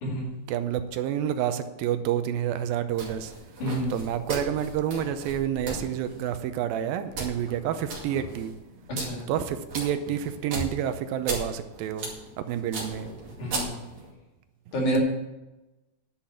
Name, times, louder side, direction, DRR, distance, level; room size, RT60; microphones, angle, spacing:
voice 1, 0.5-3.3 3.9-8.6 9.3-12.1 12.4-13.1, right 10 dB, 80° right, 10 dB, 2.5 m, -29 dB
sound 1, 2.9-14.1, right 2 dB, 40° right, 2.8 m, -38 dB
voice 2, 3.6-3.9 9.0-9.2 13.4-13.7 14.7-15.0, right 1 dB, 60° left, 0 dB, 3.6 m, -28 dB
10.5 x 5.8 x 8.6 m, 1.0 s
omnidirectional pair, 4.2 m